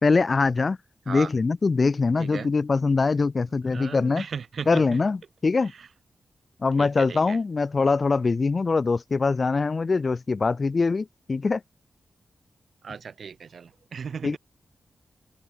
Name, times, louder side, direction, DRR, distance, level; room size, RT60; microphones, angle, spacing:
voice 1, 0.0-0.8 1.1-4.3 4.7-5.7 6.6-11.6 14.2-14.4, left 4 dB, 30° left, 0.8 m, -23 dB
voice 2, 2.2-2.5 3.7-4.8 6.8-7.4 12.8-14.4, right 6 dB, 55° right, 6.1 m, -36 dB
wide cardioid pair, 180°, 0 cm